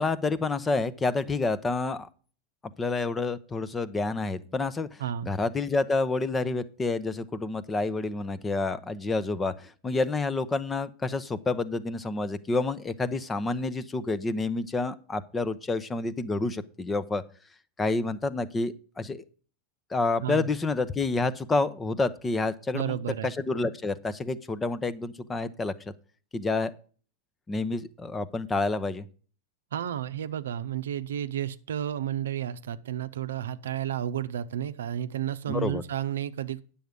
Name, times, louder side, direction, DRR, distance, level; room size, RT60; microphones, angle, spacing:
voice 1, 0.0-2.1 2.8-17.2 17.8-19.2 19.9-25.7 26.3-26.7 27.5-29.1 35.5-35.8, left 3 dB, 20° left, 0.8 m, -29 dB
voice 2, 5.0-5.3 20.2-20.5 22.7-23.3 29.7-36.6, right 10 dB, 80° right, 0.6 m, -32 dB
9.3 x 7.1 x 5.2 m
hypercardioid pair, 100°, 0 cm